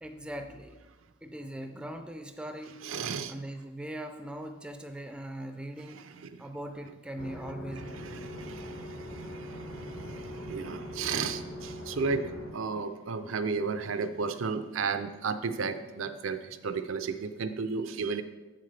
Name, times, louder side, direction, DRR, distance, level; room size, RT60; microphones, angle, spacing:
voice 1, 0.0-0.8 1.2-2.8 3.3-6.0 6.4-8.1, right 1 dB, 5° right, 6 dB, 0.3 m, -40 dB
voice 2, 2.8-3.3 5.9-6.4 7.7-18.2, right 5 dB, 85° right, 10 dB, 0.5 m, -34 dB
sound 1, 7.2-12.5, equal, 65° left, 1.2 m, -41 dB
7.7 x 7.5 x 3.3 m, 1.2 s
head